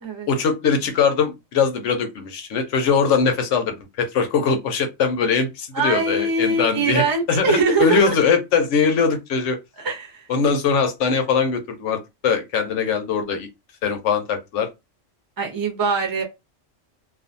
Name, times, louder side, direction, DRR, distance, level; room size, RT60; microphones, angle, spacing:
voice 1, 0.3-9.6 10.3-13.5 13.8-14.7, left 5 dB, 75° left, 1.0 m, -21 dB
voice 2, 5.7-8.1 9.8-10.3 15.4-16.2, right 3 dB, 25° right, 0.6 m, -22 dB
2.5 x 2.3 x 2.5 m
omnidirectional pair, 1.3 m